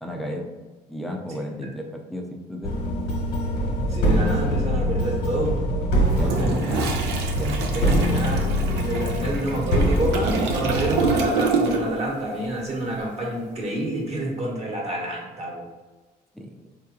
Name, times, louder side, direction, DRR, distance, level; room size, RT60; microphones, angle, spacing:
voice 1, 0.0-0.5 0.9-2.8 6.1-8.2 16.3-16.7, equal, ahead, 1 dB, 0.5 m, -33 dB
sound 1, 2.6-11.2, equal, 85° left, 1.2 m, -24 dB
voice 2, 3.9-5.6 6.2-6.6 7.7-15.6, right 1 dB, 40° right, -2 dB, 1.2 m, -28 dB
Toilet flush, 6.1-12.1 12.3-12.6, right 4 dB, 85° right, 0.6 m, -28 dB
4.6 x 3.0 x 2.4 m, 1.2 s
cardioid pair, 110°, 17 cm